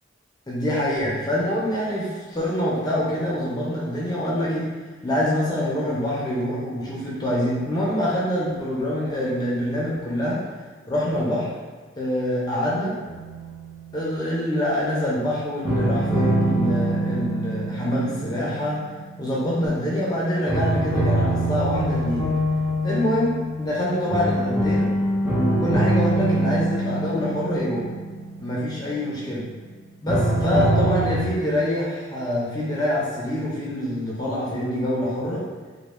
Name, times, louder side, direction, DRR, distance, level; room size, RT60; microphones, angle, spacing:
voice 1, 0.5-4.7 5.0-10.4 10.9-11.5 12.0-13.0 13.9-18.8 19.2-22.3 22.8-24.9 25.3-27.9 28.4-29.5 30.0-35.4, equal, 20° left, -6 dB, 0.4 m, -25 dB
sound 1, 13.1-14.3 15.6-19.7 20.5-29.3 30.1-31.2, right 1 dB, 10° right, 0.7 m, -24 dB
2.1 x 2.1 x 3.0 m, 1.4 s
head